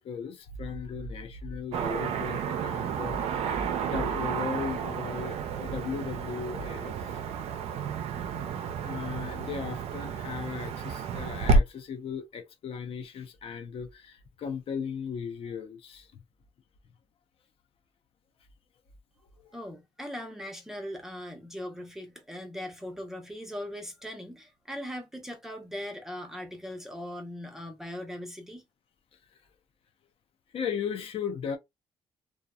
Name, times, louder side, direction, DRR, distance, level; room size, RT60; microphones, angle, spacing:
voice 1, 0.0-3.4 3.8-7.2 8.7-16.1 30.5-31.6, left 6 dB, 60° left, 0.7 m, -36 dB
Car passing by / Traffic noise roadway noise, 1.7-11.6, right 5 dB, 75° right, 0.4 m, -31 dB
voice 2, 19.5-28.6, equal, 5° right, 0.9 m, -39 dB
2.7 x 2.3 x 2.3 m
cardioid pair, 85°, 11 cm